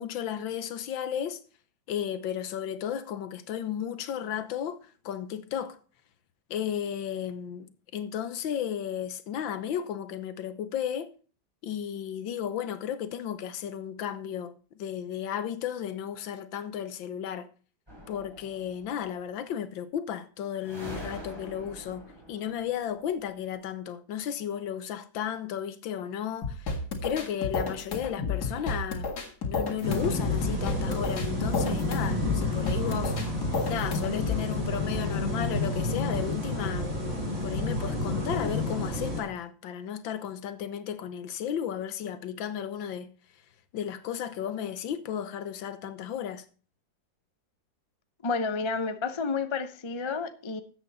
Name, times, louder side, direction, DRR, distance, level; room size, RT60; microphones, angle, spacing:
voice 1, 0.0-1.4 1.9-4.8 5.0-5.8 6.5-11.1 11.6-17.5 18.1-26.8 27.0-29.1 29.4-33.2 33.7-37.0 37.4-43.1 43.7-46.5, left 9 dB, 80° left, 1.7 m, -34 dB
sound 1, 17.9-19.0 20.6-23.5, equal, 10° right, 3.7 m, -44 dB
sound 2, 26.4-34.4, left 4 dB, 55° left, 2.4 m, -32 dB
sound 3, 29.8-39.2, left 1 dB, 35° right, 5.9 m, -30 dB
voice 2, 48.2-50.6, left 4 dB, 35° left, 0.4 m, -30 dB
13.5 x 8.2 x 4.1 m
omnidirectional pair, 2.1 m